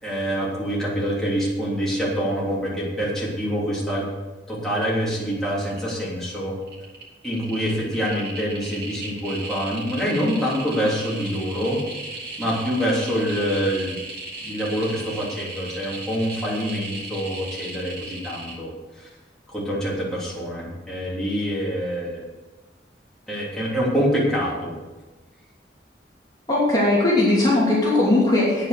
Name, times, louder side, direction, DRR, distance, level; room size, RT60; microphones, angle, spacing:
voice 1, 0.0-4.0 4.5-6.5 7.2-11.8 12.4-14.0 14.4-18.7 18.9-19.1 19.5-22.2 23.3-24.7, equal, 5° left, -7 dB, 3.1 m, -25 dB
sound 1, 5.1-5.4 5.6-6.3 6.6-18.5, right 3 dB, 55° right, 3.1 m, -36 dB
voice 2, 26.5-28.7, left 2 dB, 20° left, -6 dB, 2.8 m, -19 dB
9.9 x 9.2 x 6.7 m, 1.2 s
head